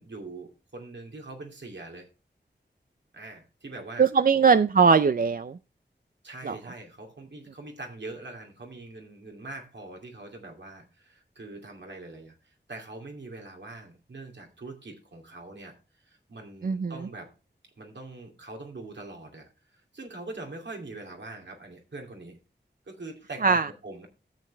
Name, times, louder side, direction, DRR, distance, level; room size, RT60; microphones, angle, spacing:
voice 1, 0.0-2.1 3.1-4.4 6.2-17.3 17.8-22.4 22.9-24.1, right 2 dB, 75° right, 2 dB, 2.7 m, -43 dB
voice 2, 4.0-5.6 6.4-6.6 16.6-16.9 23.4-23.7, right 5 dB, 50° right, 13 dB, 0.4 m, -20 dB
13.0 x 7.5 x 3.3 m, 0.32 s
wide cardioid pair, 85°, 19 cm